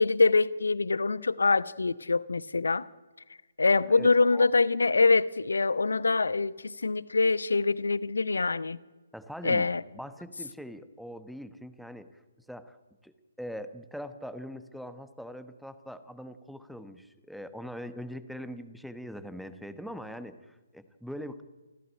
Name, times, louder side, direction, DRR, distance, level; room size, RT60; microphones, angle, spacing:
voice 1, 0.0-2.9 3.6-8.8 9.4-9.8, left 3 dB, 65° left, 0.9 m, -24 dB
voice 2, 3.9-4.5 9.1-9.7 9.9-12.2 12.5-12.8 13.0-21.4, equal, ahead, 1.1 m, -42 dB
27.0 x 15.0 x 8.9 m
figure-of-eight pair, 135°, 0 cm